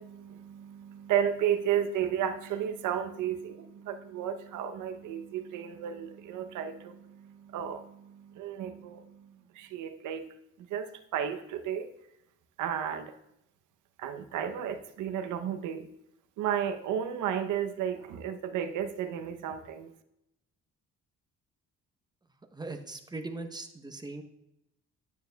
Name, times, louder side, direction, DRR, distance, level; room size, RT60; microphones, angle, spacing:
voice 1, 0.0-9.3 9.5-10.3 10.7-11.9 12.6-13.1 14.0-15.9 16.4-19.9, right 9 dB, 80° right, 9 dB, 0.7 m, -33 dB
voice 2, 22.5-24.2, right 2 dB, 15° right, 6 dB, 0.8 m, -39 dB
9.4 x 8.9 x 2.2 m, 0.84 s
cardioid pair, 90°, 30 cm